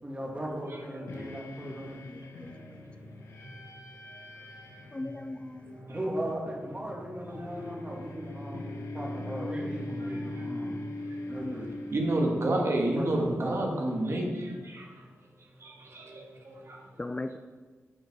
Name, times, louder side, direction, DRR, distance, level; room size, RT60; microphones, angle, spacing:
voice 1, 0.0-2.0 5.9-10.7 11.3-11.7 12.9-13.6, right 1 dB, 25° right, -2 dB, 2.4 m, -37 dB
sound 1, 1.1-13.1, left 1 dB, 85° left, 1.1 m, -41 dB
voice 2, 4.9-5.8 11.4-11.6 17.0-17.4, left 2 dB, 20° left, 8 dB, 0.4 m, -37 dB
voice 3, 5.6-6.0 7.4-7.7 10.0-10.5 11.0-11.2 11.9-14.9 15.6-16.8, right 1 dB, 60° right, 0 dB, 1.8 m, -31 dB
10.5 x 5.2 x 4.7 m, 1.4 s
cardioid pair, 65°, 5 cm